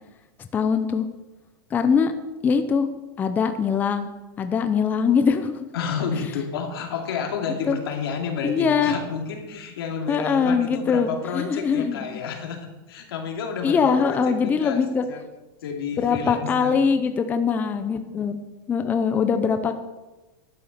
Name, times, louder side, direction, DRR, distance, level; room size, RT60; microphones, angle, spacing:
voice 1, 0.4-1.1 1.7-2.1 2.4-2.9 3.2-4.1 4.4-5.7 7.7-7.8 8.4-9.0 10.1-12.0 13.6-15.1 16.0-18.4 18.7-19.8, left 6 dB, 15° left, 8 dB, 0.6 m, -22 dB
voice 2, 5.7-14.8 15.1-15.2 15.6-16.8, left 6 dB, 90° left, 3 dB, 2.6 m, -30 dB
11.5 x 8.8 x 6.6 m, 1.1 s
supercardioid pair, 170°, 12 cm